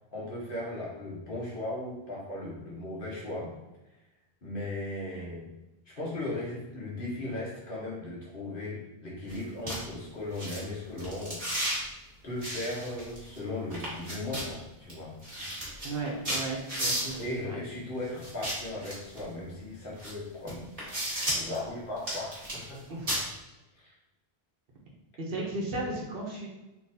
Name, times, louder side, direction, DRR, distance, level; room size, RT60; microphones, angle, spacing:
voice 1, 0.1-3.5 4.4-5.5 5.9-11.4 12.2-15.1 17.2-20.7 21.3-22.8 23.7-23.9, left 2 dB, 60° left, -6 dB, 1.4 m, -37 dB
sound 1, 9.3-9.4 9.7-9.8 10.3-10.6 11.0-11.8 12.4-13.4 13.7-14.5 14.9-15.0 15.2-17.2 18.2-19.2 20.0-20.1 20.5-21.6 22.0-22.8 23.1-23.2, equal, 35° right, 1.6 m, -33 dB
voice 2, 15.8-17.2 17.4-17.6 22.9-23.1 25.2-26.5, right 2 dB, 70° right, -1 dB, 1.1 m, -35 dB
3.8 x 3.2 x 2.6 m, 1.0 s
omnidirectional pair, 1.0 m